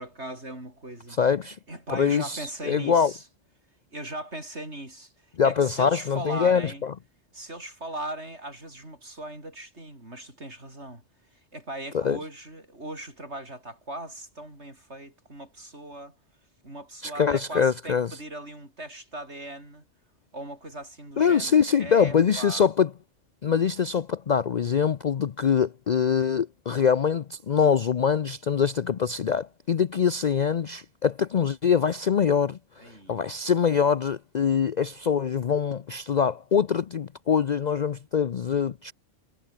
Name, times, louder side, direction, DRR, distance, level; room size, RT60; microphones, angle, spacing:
voice 1, 0.0-1.2 1.7-3.2 3.9-6.8 7.3-11.0 11.3-16.1 16.6-19.8 20.3-22.6 32.8-33.2, right 1 dB, 60° right, 7.9 m, -39 dB
voice 2, 1.2-1.6 1.9-3.1 5.4-6.9 11.9-12.2 17.0-18.2 21.2-22.9 23.4-32.6 33.1-38.9, left 7 dB, 50° left, 0.5 m, -24 dB
omnidirectional pair, 1.3 m